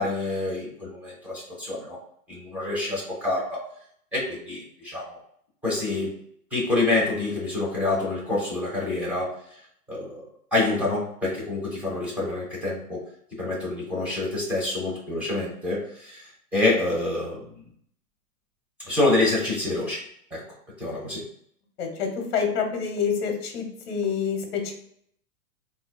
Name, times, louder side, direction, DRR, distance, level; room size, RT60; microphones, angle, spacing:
voice 1, 0.0-2.0 2.3-3.6 4.1-5.2 5.6-6.2 6.5-9.3 9.9-10.2 10.5-13.0 13.3-17.5 18.9-20.0 20.3-20.4 20.8-21.3, left 2 dB, 5° right, -6 dB, 0.8 m, -27 dB
voice 2, 21.8-24.7, left 6 dB, 40° left, 3 dB, 0.8 m, -27 dB
3.7 x 2.5 x 2.2 m, 0.67 s
hypercardioid pair, 150°, 46 cm